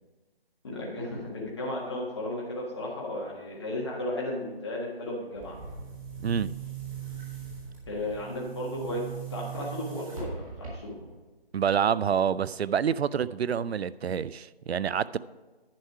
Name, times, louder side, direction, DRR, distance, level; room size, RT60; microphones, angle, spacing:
voice 1, 0.6-5.6 7.9-9.0 9.3-10.9, left 1 dB, 25° left, -4 dB, 1.6 m, -34 dB
Boom, 5.3-11.2, right 7 dB, 35° right, 2.2 m, -40 dB
voice 2, 6.2-6.5 11.5-15.2, right 7 dB, 85° right, 18 dB, 0.5 m, -27 dB
10.5 x 5.5 x 4.7 m, 1.2 s
figure-of-eight pair, 165°, 31 cm